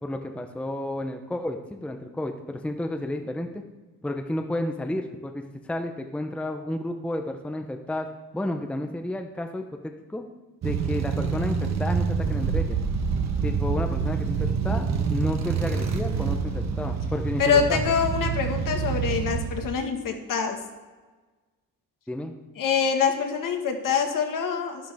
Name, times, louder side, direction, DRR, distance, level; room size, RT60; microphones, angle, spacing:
voice 1, 0.0-3.6 4.0-8.1 8.3-10.2 10.6-12.8 13.4-17.8 22.1-22.4, left 1 dB, 5° left, 5 dB, 0.7 m, -31 dB
sound 1, 10.6-19.7, right 5 dB, 45° right, 1.2 m, -27 dB
voice 2, 17.4-20.6 22.6-24.9, left 6 dB, 55° left, 4 dB, 1.6 m, -25 dB
11.5 x 10.5 x 3.5 m, 1.3 s
cardioid pair, 125°, 37 cm